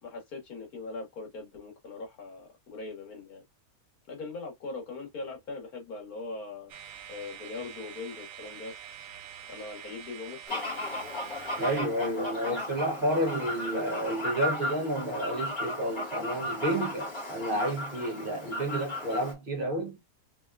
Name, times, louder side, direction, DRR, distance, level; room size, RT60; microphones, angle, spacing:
voice 1, 0.0-3.4 4.1-6.7 7.1-8.7 9.5-10.8, left 3 dB, 80° left, 2.1 m, -41 dB
sound 1, 6.7-11.8, right 9 dB, 70° right, 1.1 m, -45 dB
Fowl, 10.5-19.3, left 1 dB, 30° left, 2.5 m, -35 dB
voice 2, 11.6-20.0, right 1 dB, 40° right, 1.1 m, -30 dB
4.0 x 3.3 x 2.4 m
omnidirectional pair, 1.5 m